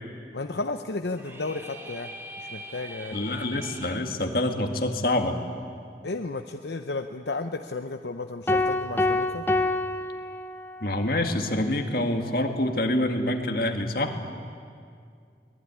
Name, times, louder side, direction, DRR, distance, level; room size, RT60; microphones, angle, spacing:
voice 1, 0.3-2.1 2.4-3.4 6.0-9.5, left 3 dB, 75° left, 6 dB, 0.8 m, -33 dB
sound 1, 1.1-4.0, right 1 dB, 15° right, 2.0 m, -42 dB
voice 2, 3.1-5.4 10.8-14.1, left 1 dB, 55° left, 4 dB, 2.0 m, -26 dB
sound 2, 8.5-10.9, left 2 dB, 10° left, 0.8 m, -26 dB
23.5 x 19.0 x 9.9 m, 2.3 s
head